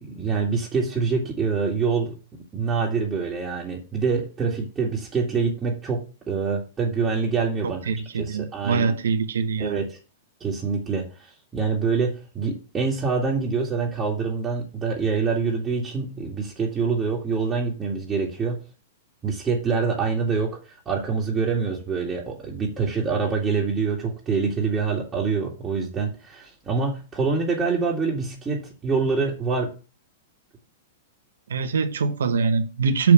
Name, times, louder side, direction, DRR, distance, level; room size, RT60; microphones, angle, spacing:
voice 1, 0.0-2.2 2.5-7.8 8.1-9.0 9.6-10.0 10.4-18.6 19.2-29.7, right 5 dB, 20° right, 2.1 m, -25 dB
voice 2, 7.9-9.8 31.5-33.1, right 5 dB, 80° right, 1.2 m, -22 dB
6.4 x 6.1 x 7.1 m
hypercardioid pair, 120°, 0 cm